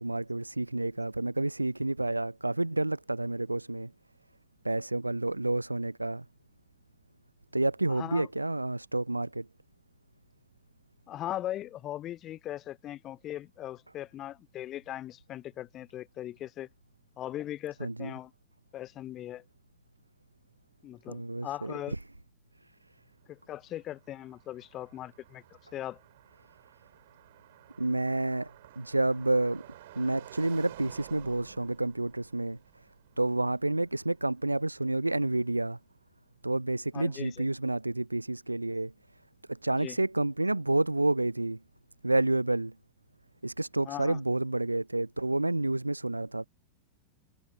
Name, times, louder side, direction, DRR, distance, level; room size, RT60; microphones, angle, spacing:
voice 1, 0.0-3.9 4.6-6.3 7.5-9.5 17.8-18.1 21.1-22.0 22.6-22.7 27.8-29.7 30.0-32.9 33.2-35.8 36.4-38.9 39.5-41.6 42.0-42.8 43.4-46.5, right 2 dB, 85° right, 0.4 m, -29 dB
voice 2, 8.0-8.3 11.1-16.7 17.2-18.3 18.7-19.4 20.8-22.0 23.3-25.4 25.7-26.0 36.9-37.5 39.8-40.0 43.9-44.2, left 13 dB, 30° left, 0.3 m, -39 dB
Car passing by, 23.2-35.2, right 15 dB, 55° right, 6.0 m, -53 dB
figure-of-eight pair, 90°, 0 cm